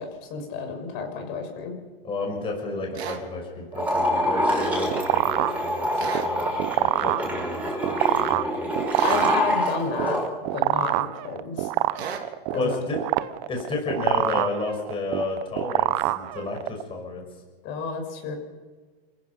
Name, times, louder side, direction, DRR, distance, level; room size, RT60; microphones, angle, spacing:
voice 1, 0.0-1.8 9.0-10.2 10.5-11.7 12.5-12.8 17.6-18.3, left 5 dB, 35° left, 4 dB, 5.9 m, -31 dB
voice 2, 2.0-5.9 6.2-6.4 6.8-8.7 9.4-9.5 12.5-13.0 13.5-17.2, left 3 dB, 15° left, 1 dB, 5.8 m, -31 dB
sound 1, 2.9-3.2 6.0-6.3 8.9-9.3 12.0-12.3, right 7 dB, 85° right, 3.6 m, -33 dB
sound 2, 3.7-10.2, equal, 5° right, 6.6 m, -26 dB
sound 3, 4.4-16.8, right 18 dB, 40° right, 0.8 m, -26 dB
30.0 x 15.5 x 5.7 m, 1.4 s
hypercardioid pair, 145°, 31 cm